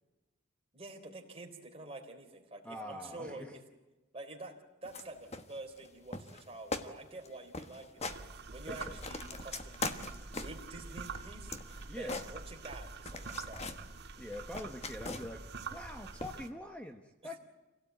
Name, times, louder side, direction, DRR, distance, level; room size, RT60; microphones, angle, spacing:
voice 1, 0.7-3.6 4.1-4.6 4.8-8.2 8.5-11.6 11.9-13.8, right 2 dB, 30° right, 2 dB, 3.6 m, -48 dB
voice 2, 2.6-3.6 8.6-9.0 11.9-12.3 14.2-17.4, left 1 dB, 5° left, 4 dB, 1.1 m, -44 dB
sound 1, 4.8-5.1 5.3-5.9 6.1-6.4 6.7-6.9 7.2-7.3 7.5-8.2 8.6-10.7 11.1-12.8 13.1-13.8 14.2-15.5 16.2-16.5, left 3 dB, 30° left, 1.3 m, -41 dB
sound 2, 8.0-16.5, right 4 dB, 55° right, 1.5 m, -46 dB
27.5 x 17.0 x 9.2 m, 1.1 s
head